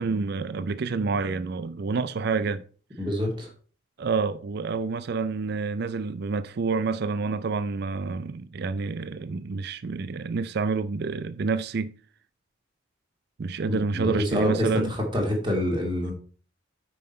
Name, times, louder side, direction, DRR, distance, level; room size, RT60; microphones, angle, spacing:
voice 1, 0.0-2.6 4.0-11.9 13.4-14.9, right 4 dB, 50° right, 0.4 m, -28 dB
voice 2, 3.0-3.5 13.7-16.1, left 1 dB, 20° right, 2.1 m, -26 dB
9.2 x 5.7 x 4.2 m
head